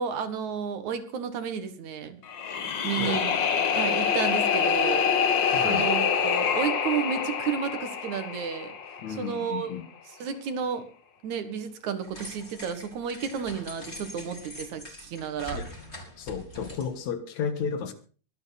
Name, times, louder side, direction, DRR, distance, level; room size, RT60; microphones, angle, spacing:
voice 1, 0.0-2.2 2.8-3.4 3.7-8.7 9.2-9.7 10.2-10.9 11.2-15.6, right 7 dB, 80° right, 3.1 m, -32 dB
sound 1, 2.3-9.4, left 7 dB, 50° left, 1.6 m, -26 dB
voice 2, 2.9-3.2 5.5-5.9 9.0-9.9 15.5-15.7 16.2-17.9, left 7 dB, 75° left, 2.9 m, -33 dB
sound 2, 12.0-17.1, equal, 20° left, 4.3 m, -43 dB
23.5 x 9.0 x 4.1 m
omnidirectional pair, 3.3 m